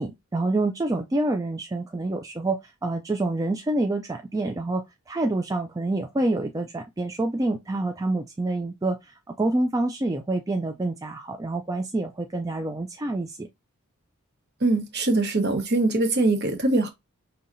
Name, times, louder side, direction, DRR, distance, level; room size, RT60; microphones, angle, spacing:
voice 1, 0.0-13.5, right 2 dB, 15° right, 0.4 m, -27 dB
voice 2, 14.6-16.9, right 2 dB, 50° right, 1.0 m, -22 dB
5.5 x 2.7 x 2.6 m
head